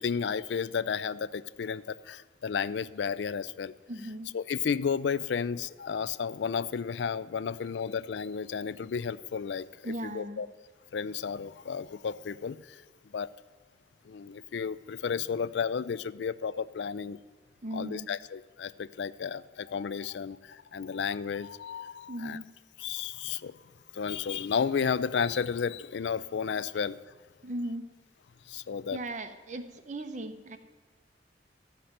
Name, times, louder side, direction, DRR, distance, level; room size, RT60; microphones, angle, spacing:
voice 1, 0.0-3.7 4.3-10.5 10.9-13.3 14.0-17.2 17.7-22.4 22.8-23.6 23.9-27.1 28.4-29.0, left 6 dB, 80° left, 17 dB, 0.4 m, -33 dB
voice 2, 3.9-4.4 7.8-8.0 9.8-10.4 17.6-18.1 22.1-22.5 27.4-27.9 28.9-30.6, right 1 dB, 40° right, 7 dB, 0.9 m, -37 dB
13.5 x 5.9 x 7.9 m, 1.4 s
head